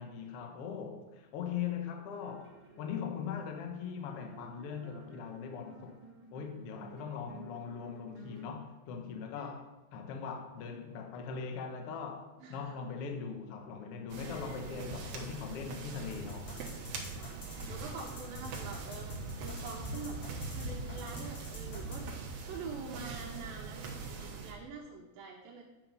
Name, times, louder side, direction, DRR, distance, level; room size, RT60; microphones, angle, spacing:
voice 1, 0.0-6.0 6.3-16.5, left 6 dB, 75° left, 4 dB, 1.3 m, -40 dB
impro indian echo, 2.2-8.5, right 4 dB, 30° right, 0.6 m, -54 dB
voice 2, 12.4-12.7 14.2-14.4 17.0-17.4 17.6-22.1 22.5-25.6, right 4 dB, 80° right, -1 dB, 2.6 m, -46 dB
sound 1, 14.1-24.5, right 4 dB, 65° right, 2.0 m, -42 dB
sound 2, 16.1-22.0, left 2 dB, 45° left, 2.9 m, -45 dB
9.3 x 6.1 x 5.4 m, 1.0 s
omnidirectional pair, 4.2 m